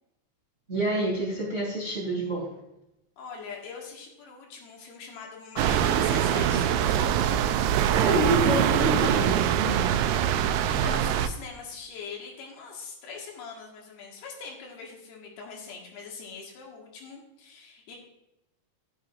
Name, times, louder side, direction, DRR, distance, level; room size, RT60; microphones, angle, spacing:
voice 1, 0.7-2.5 7.9-9.9, right 1 dB, 20° right, -4 dB, 2.3 m, -28 dB
voice 2, 3.2-7.3 10.4-18.0, left 5 dB, 75° left, -1 dB, 3.6 m, -42 dB
sound 1, 5.6-11.3, right 10 dB, 85° right, 2.0 m, -23 dB
13.0 x 8.9 x 2.5 m, 0.90 s
omnidirectional pair, 4.6 m